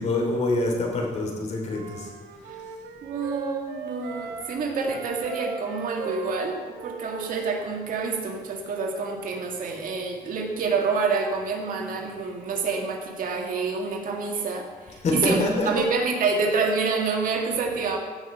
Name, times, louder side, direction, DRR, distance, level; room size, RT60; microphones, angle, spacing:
voice 1, 0.0-2.1 15.0-15.7, left 2 dB, 40° left, 0 dB, 3.0 m, -25 dB
Wind instrument woodwind instrument, 1.6-4.6 4.9-8.0, right 7 dB, 75° right, 1.2 m, -38 dB
voice 2, 3.0-18.0, right 4 dB, 55° right, 2 dB, 2.0 m, -27 dB
15.0 x 6.1 x 5.5 m, 1.5 s
cardioid pair, 110°, 17 cm